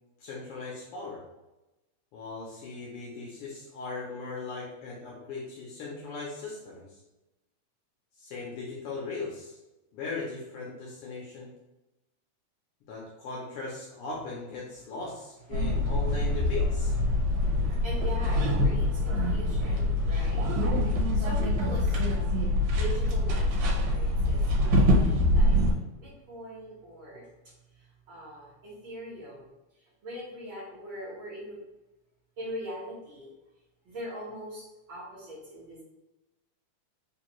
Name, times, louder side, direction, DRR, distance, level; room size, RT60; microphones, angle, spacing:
voice 1, 0.2-1.2 2.1-7.0 8.2-9.6 9.9-11.5 12.9-16.9, left 3 dB, 90° left, -4 dB, 1.2 m, -38 dB
sound 1, 15.5-25.7, left 1 dB, 75° right, 1.9 m, -25 dB
voice 2, 17.1-25.6 25.9-31.6 32.4-33.3 33.8-35.8, equal, 55° right, -9 dB, 1.7 m, -42 dB
4.5 x 2.5 x 3.0 m, 0.99 s
omnidirectional pair, 3.3 m